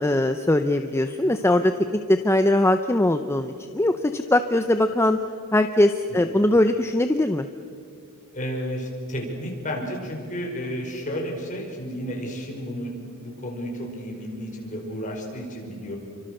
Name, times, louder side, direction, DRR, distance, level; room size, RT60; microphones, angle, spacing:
voice 1, 0.0-5.2 5.5-7.5, left 1 dB, 10° left, 8 dB, 0.6 m, -21 dB
voice 2, 8.3-12.9 13.2-16.0, equal, 35° left, 0 dB, 5.4 m, -32 dB
29.0 x 24.5 x 6.6 m, 2.4 s
head